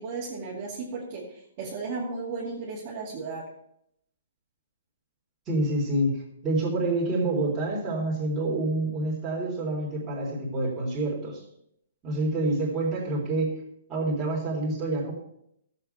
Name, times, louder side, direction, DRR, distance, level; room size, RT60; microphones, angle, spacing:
voice 1, 0.0-3.5, right 4 dB, 30° right, -6 dB, 2.4 m, -35 dB
voice 2, 5.5-11.4 12.0-13.5 13.9-15.1, right 2 dB, 15° right, -5 dB, 3.5 m, -27 dB
14.5 x 7.6 x 4.5 m, 0.74 s
hypercardioid pair, 170°, 0 cm